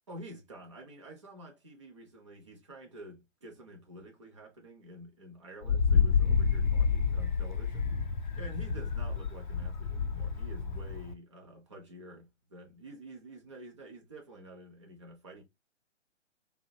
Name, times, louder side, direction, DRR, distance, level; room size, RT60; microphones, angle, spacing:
voice 1, 0.1-7.9 8.4-15.4, equal, 25° right, 0.5 m, -49 dB
Wind, 5.6-11.1, left 6 dB, 40° left, 0.4 m, -29 dB
2.6 x 2.1 x 2.7 m
figure-of-eight pair, 130°, 36 cm